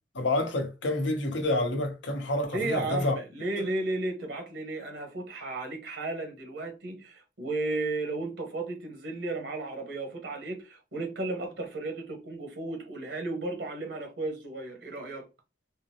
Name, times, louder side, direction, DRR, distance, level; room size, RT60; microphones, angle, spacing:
voice 1, 0.1-3.2, left 2 dB, 90° left, 0.8 m, -28 dB
voice 2, 2.5-15.3, right 2 dB, 80° right, 1.0 m, -34 dB
3.6 x 2.0 x 2.8 m
head